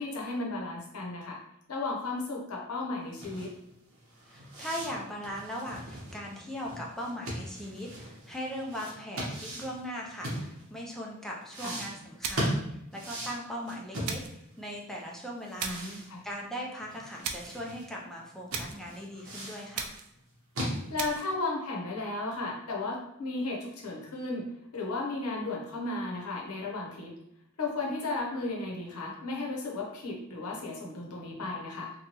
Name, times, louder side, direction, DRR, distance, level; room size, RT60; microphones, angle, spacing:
voice 1, 0.0-1.4 1.7-3.5 11.6-11.8 15.6-16.2 20.9-24.5 24.7-27.1 27.6-31.9, left 2 dB, 80° left, -1 dB, 0.7 m, -34 dB
sound 1, 3.1-10.9 11.5-14.6 14.9-15.0 15.4-17.9 18.2-18.3 18.5-19.7 20.2-21.3, equal, 60° right, 0.9 m, -38 dB
voice 2, 4.3-19.9, equal, ahead, -3 dB, 0.4 m, -39 dB
sound 2, 12.2-12.7 14.0-14.4 15.6-16.0 17.2-17.6 18.5-18.9 19.7-20.2 21.0-21.3, right 6 dB, 90° right, 0.4 m, -37 dB
2.9 x 2.2 x 2.8 m, 0.78 s
head